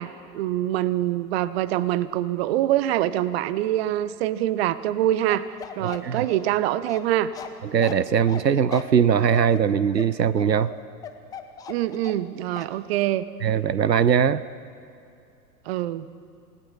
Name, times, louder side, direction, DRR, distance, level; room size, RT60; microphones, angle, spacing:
voice 1, 0.0-5.5 5.8-7.3 11.7-13.3 15.7-16.1, right 13 dB, 40° right, 16 dB, 0.8 m, -25 dB
Bark, 5.3-12.3 12.6-12.7, left 8 dB, 10° left, 0.5 m, -39 dB
voice 2, 5.8-6.3 7.7-10.7 13.4-14.4, right 7 dB, 90° right, 17 dB, 0.7 m, -21 dB
28.0 x 17.5 x 5.7 m, 2.6 s
figure-of-eight pair, 105°, 48 cm